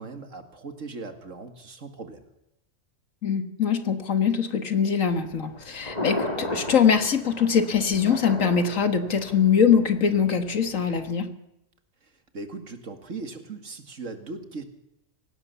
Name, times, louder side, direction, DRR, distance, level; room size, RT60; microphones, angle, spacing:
voice 1, 0.0-2.3 12.0-14.6, right 3 dB, 70° right, 7 dB, 2.4 m, -39 dB
voice 2, 3.2-11.3, left 7 dB, 75° left, 8 dB, 2.1 m, -22 dB
Thunder, 5.2-11.1, left 1 dB, 30° left, 3.1 m, -35 dB
23.5 x 17.5 x 7.0 m, 0.84 s
omnidirectional pair, 1.4 m